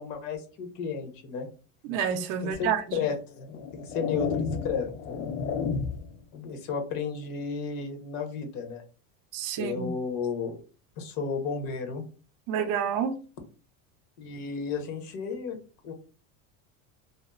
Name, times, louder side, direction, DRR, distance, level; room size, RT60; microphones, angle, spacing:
voice 1, 0.0-1.5 2.4-5.1 6.3-8.8 9.6-10.6 11.0-12.0 14.2-15.6 15.8-15.9, left 5 dB, 60° left, 0.9 m, -33 dB
voice 2, 1.8-3.0 9.3-9.9 12.5-13.2, right 7 dB, 55° right, 0.5 m, -29 dB
sound 1, 2.5-2.7 3.4-6.2, left 6 dB, 90° left, 0.6 m, -32 dB
2.7 x 2.0 x 2.3 m
supercardioid pair, 120°, 39 cm